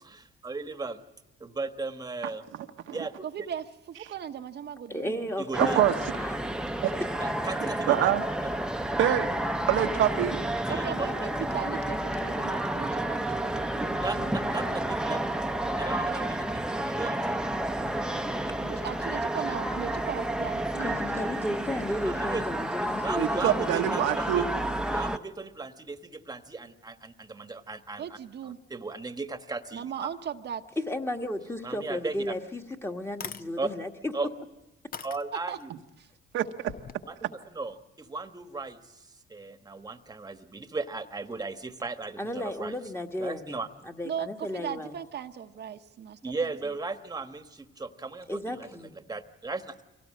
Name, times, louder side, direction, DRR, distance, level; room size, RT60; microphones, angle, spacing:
voice 1, 0.0-1.0 1.4-2.4 2.9-3.3 5.4-5.8 7.2-8.1 8.4-8.5 10.7-11.1 14.0-15.2 15.8-17.4 22.0-22.4 23.0-24.5 24.9-28.0 28.4-30.1 31.6-32.3 33.6-33.7 34.1-34.3 35.0-35.7 37.0-42.7 43.2-43.7 46.2-49.8, right 3 dB, 20° right, 9 dB, 1.2 m, -36 dB
voice 2, 3.2-5.3 10.7-15.4 18.6-21.0 28.0-28.6 29.7-30.6 35.5-35.6 36.0-36.1 44.0-46.5, right 8 dB, 60° right, 6 dB, 0.9 m, -38 dB
voice 3, 4.9-5.9 6.1-6.4 7.0-7.1 20.8-23.6 30.9-34.1 42.2-43.6 43.8-44.9 48.3-48.9, left 1 dB, 10° left, 4 dB, 1.5 m, -34 dB
sound 1, 5.5-25.2, right 1 dB, 5° right, 0.8 m, -30 dB
voice 4, 5.6-5.9 6.8-6.9 7.9-8.2 9.0-9.3 9.7-10.4 23.2-24.4 36.3-36.7, right 12 dB, 90° right, 5 dB, 1.0 m, -25 dB
sound 2, 32.4-32.5 33.1-33.5 34.2-34.3 34.9-35.7 36.6-37.0, left 7 dB, 45° left, 0.8 m, -40 dB
23.5 x 17.5 x 7.6 m, 1.1 s
cardioid pair, 90°, 20 cm